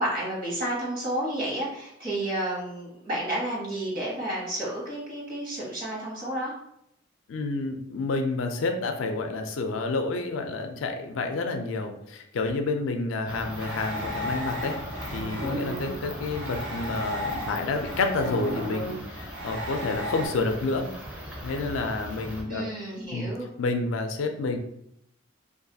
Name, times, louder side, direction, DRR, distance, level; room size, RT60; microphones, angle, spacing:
voice 1, 0.0-6.5 22.5-23.5, right 1 dB, 45° right, -5 dB, 1.1 m, -31 dB
voice 2, 7.3-14.8 15.1-20.9 21.4-22.6 23.1-23.3 23.6-24.6, left 3 dB, 75° left, 5 dB, 0.4 m, -29 dB
sound 1, 13.3-22.4, equal, 5° right, 0.5 m, -39 dB
sound 2, 13.6-20.3, equal, 80° right, 0.7 m, -34 dB
2.5 x 2.3 x 2.7 m, 0.75 s
head